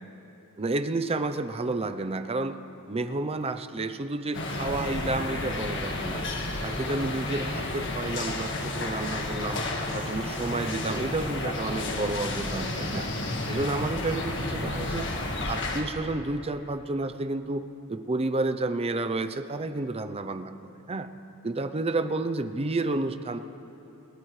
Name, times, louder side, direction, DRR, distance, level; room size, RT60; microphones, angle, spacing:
voice 1, 0.6-2.6 2.9-6.2 6.6-9.6 9.9-13.1 13.5-15.1 15.4-21.1 21.4-23.4, right 2 dB, 30° right, 9 dB, 0.6 m, -30 dB
sound 1, 4.3-15.8, left 2 dB, 60° left, 1.6 m, -31 dB
27.5 x 13.5 x 3.2 m, 3.0 s
head